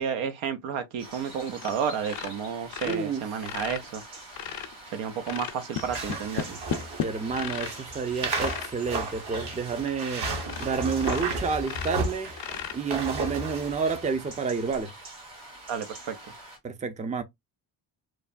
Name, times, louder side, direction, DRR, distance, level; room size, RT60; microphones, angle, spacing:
voice 1, 0.0-4.0 4.9-6.6 15.7-16.1, right 7 dB, 75° right, 0.7 m, -31 dB
sound 1, 1.0-16.6, right 2 dB, 90° right, 1.8 m, -45 dB
sound 2, 1.6-1.8 2.0-4.7 5.2-7.8 8.3-8.7 9.4-9.5 9.9-10.0 10.4-10.7 11.0-13.1 14.6-14.8, left 9 dB, 50° left, 0.6 m, -35 dB
voice 2, 2.8-3.2 7.0-10.3 10.6-12.3 12.7-14.9 16.6-17.2, right 5 dB, 15° right, 0.5 m, -29 dB
sound 3, 5.8-14.1, right 3 dB, 55° right, 1.1 m, -34 dB
3.1 x 2.1 x 2.4 m
supercardioid pair, 65°, 48 cm